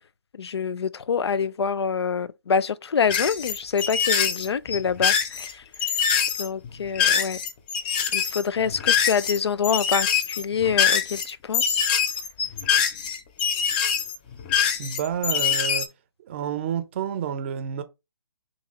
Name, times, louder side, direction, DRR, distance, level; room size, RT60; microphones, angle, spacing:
voice 1, 0.3-5.6 6.4-7.4 8.1-11.8, left 6 dB, 90° left, 0.4 m, -26 dB
sound 1, 3.1-9.4 9.6-15.8, left 7 dB, 20° left, 0.5 m, -24 dB
voice 2, 14.8-15.9 16.2-17.8, right 8 dB, 30° right, 0.5 m, -29 dB
2.8 x 2.5 x 4.0 m
hypercardioid pair, 155°, 13 cm